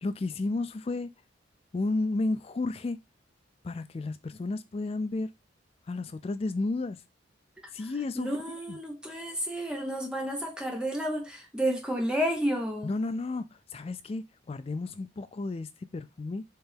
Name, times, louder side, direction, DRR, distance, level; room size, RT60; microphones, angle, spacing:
voice 1, 0.0-1.1 1.7-3.0 3.6-5.3 5.9-7.0 7.7-8.3 8.7-8.8 12.8-13.4 13.7-16.4, left 2 dB, 30° left, 0.3 m, -32 dB
voice 2, 8.2-12.9, equal, 5° right, 0.8 m, -31 dB
4.4 x 3.3 x 3.4 m
head